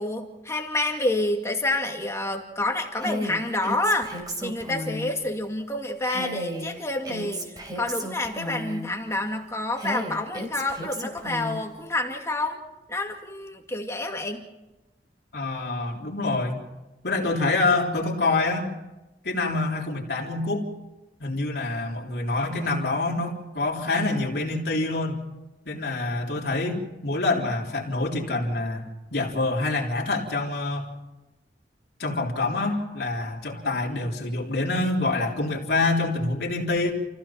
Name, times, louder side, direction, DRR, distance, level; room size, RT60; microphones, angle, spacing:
voice 1, 0.0-12.6 12.9-14.5, left 2 dB, 15° left, 2 dB, 2.4 m, -28 dB
Female speech woman speaking, 3.0-5.1 6.0-8.9 9.8-11.7, equal, 25° right, 3.8 m, -33 dB
voice 2, 15.3-16.6 17.0-18.7 19.2-20.7 21.2-25.2 25.7-30.9 32.0-36.9, left 2 dB, 65° left, -1 dB, 3.5 m, -26 dB
29.0 x 15.5 x 5.9 m, 1.0 s
head